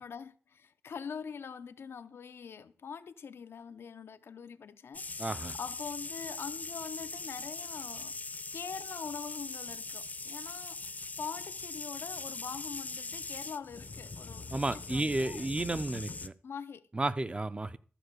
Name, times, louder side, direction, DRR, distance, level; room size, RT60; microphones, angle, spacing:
voice 1, 0.0-5.0 5.5-15.5 16.4-16.9, left 6 dB, 85° left, 0.6 m, -44 dB
sound 1, 4.9-16.3, left 3 dB, 40° left, 0.7 m, -41 dB
voice 2, 5.2-5.6 14.5-16.3 16.9-17.8, right 2 dB, 25° right, 0.7 m, -32 dB
13.0 x 4.5 x 6.6 m
cardioid pair, 60°, 4 cm